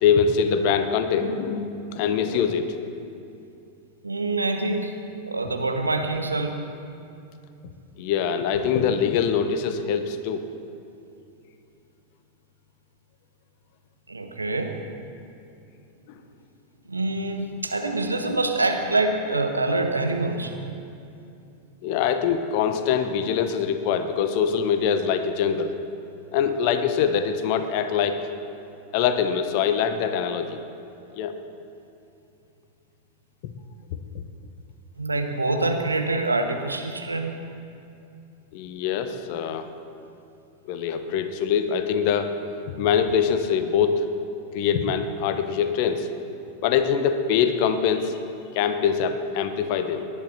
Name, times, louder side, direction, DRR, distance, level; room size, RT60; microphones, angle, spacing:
voice 1, 0.0-2.7 8.0-10.4 16.1-16.2 21.8-25.7 26.3-28.2 28.9-30.6 31.1-31.3 33.4-33.5 34.1-34.2 38.5-39.7 40.6-42.3 42.7-44.1 44.5-46.1 46.6-48.2 48.5-50.0, left 7 dB, 45° left, 9 dB, 1.0 m, -23 dB
voice 2, 4.0-4.9 5.3-6.6 14.1-14.8 16.9-20.6 35.0-37.4 39.1-39.2, right 2 dB, 80° right, 5 dB, 1.1 m, -25 dB
18.0 x 11.0 x 4.2 m, 2.7 s
figure-of-eight pair, 90°, 0 cm